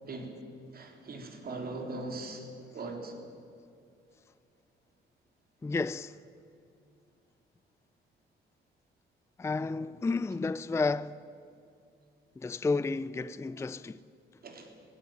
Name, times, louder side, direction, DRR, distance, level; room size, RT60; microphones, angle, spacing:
voice 1, 0.0-0.3 0.7-2.5 2.7-3.1 14.4-14.7, right 2 dB, 50° right, 3.7 m, -40 dB
voice 2, 5.6-6.2 9.4-11.2 12.4-14.0, left 3 dB, 15° left, 0.4 m, -31 dB
17.0 x 17.0 x 9.1 m
cardioid pair, 90°, 20 cm